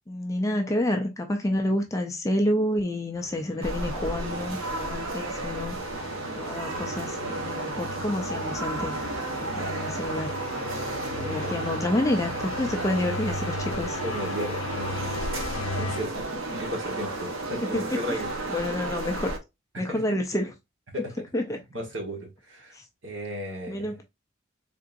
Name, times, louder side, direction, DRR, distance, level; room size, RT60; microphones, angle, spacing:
voice 1, 0.1-5.8 6.4-9.0 9.4-10.3 11.1-14.0 17.7-18.2 18.5-19.3 19.8-20.5 21.3-21.6 22.7-22.8 23.7-24.0, left 1 dB, 15° left, 0.4 m, -29 dB
sound 1, 3.2-16.0, left 3 dB, 85° left, 0.6 m, -38 dB
sound 2, 3.6-19.4, right 2 dB, 85° right, 0.9 m, -33 dB
voice 2, 11.1-11.7 14.0-15.1 15.7-18.3 19.7-20.0 20.9-21.2 21.7-22.8 23.0-23.9, equal, 65° right, 1.3 m, -35 dB
3.8 x 3.6 x 2.5 m
head